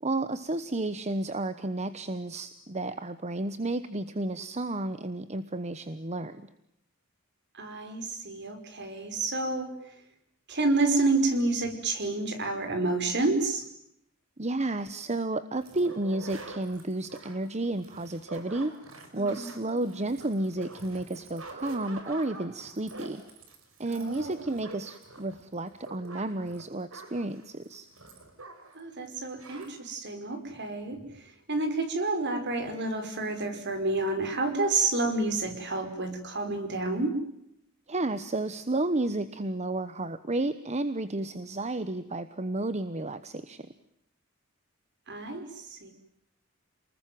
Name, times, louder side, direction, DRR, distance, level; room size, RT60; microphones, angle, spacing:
voice 1, 0.0-6.5 14.4-18.7 19.1-23.2 23.8-27.9 37.9-43.7, right 2 dB, 30° right, 12 dB, 1.1 m, -32 dB
voice 2, 7.5-9.7 10.5-13.7 19.2-19.5 23.9-24.4 28.8-31.0 31.5-37.2 45.1-45.9, right 3 dB, 55° right, 8 dB, 5.2 m, -29 dB
sound 1, 15.6-28.8 29.1-29.2 29.4-29.7, right 2 dB, 75° right, 5.6 m, -46 dB
29.0 x 20.5 x 9.3 m, 0.78 s
head